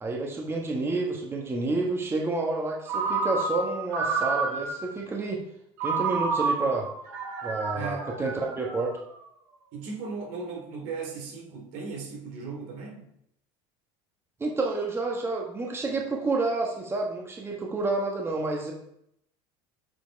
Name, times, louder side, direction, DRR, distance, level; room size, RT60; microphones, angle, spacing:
voice 1, 0.0-5.4 5.8-6.9 7.4-8.9 14.4-18.7, right 3 dB, 20° right, -1 dB, 1.4 m, -29 dB
Ringtone, 2.9-4.9 5.8-9.1, right 4 dB, 90° right, 2.5 m, -30 dB
voice 2, 7.7-8.1 9.7-13.1, right 4 dB, 70° right, 1 dB, 2.7 m, -37 dB
7.8 x 5.2 x 4.6 m, 0.75 s
supercardioid pair, 115°, 14 cm